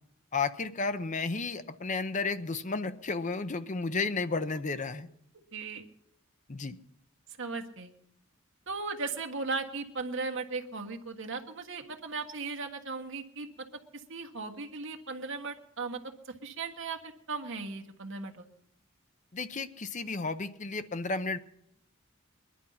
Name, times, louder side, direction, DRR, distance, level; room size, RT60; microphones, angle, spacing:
voice 1, 0.3-5.1 6.5-6.8 19.3-21.4, left 4 dB, 35° left, 11 dB, 0.7 m, -32 dB
voice 2, 5.5-5.8 7.4-7.9 8.7-13.5 14.1-16.0 16.4-17.0 17.3-18.4, right 4 dB, 65° right, 4 dB, 1.6 m, -37 dB
21.0 x 11.0 x 5.7 m, 0.73 s
head